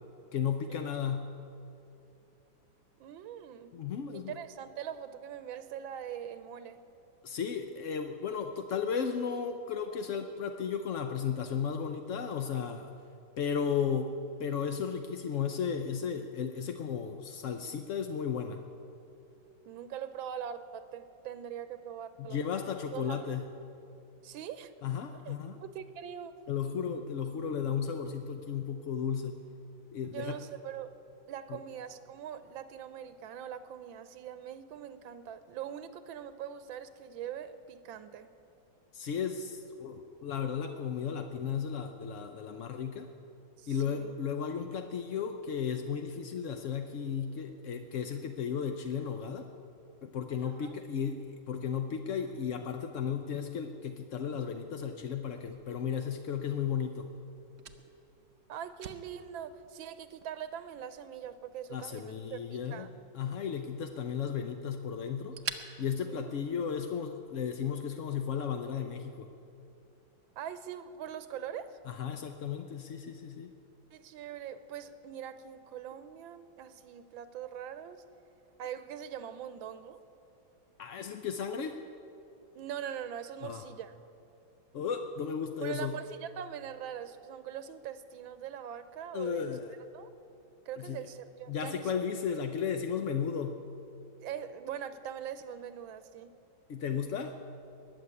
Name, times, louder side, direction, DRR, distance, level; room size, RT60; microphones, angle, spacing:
voice 1, 0.3-1.3 3.7-4.4 7.2-12.9 13.4-18.6 22.2-23.5 24.8-25.6 26.5-29.4 29.9-30.4 31.5-31.6 38.9-43.1 43.7-49.5 50.0-57.1 61.7-62.9 63.1-65.4 65.8-69.3 71.9-73.5 80.8-81.8 83.4-83.6 84.7-86.0 89.1-89.7 90.8-91.1 91.5-93.6 96.7-97.4, left 7 dB, 65° left, 6 dB, 0.7 m, -34 dB
voice 2, 3.0-3.7 4.1-6.8 19.6-22.4 22.9-23.4 24.2-24.8 25.2-26.3 30.1-30.9 31.3-38.3 43.6-44.2 50.5-50.8 58.5-62.9 66.1-66.2 70.4-71.8 73.9-78.0 78.6-80.0 82.5-84.0 85.6-89.5 89.9-90.1 90.7-91.9 94.2-96.3, right 9 dB, 85° right, 12 dB, 1.5 m, -42 dB
Fire, 55.4-67.0, right 8 dB, 60° right, 0.9 m, -50 dB
20.5 x 7.3 x 9.6 m, 2.7 s
omnidirectional pair, 2.1 m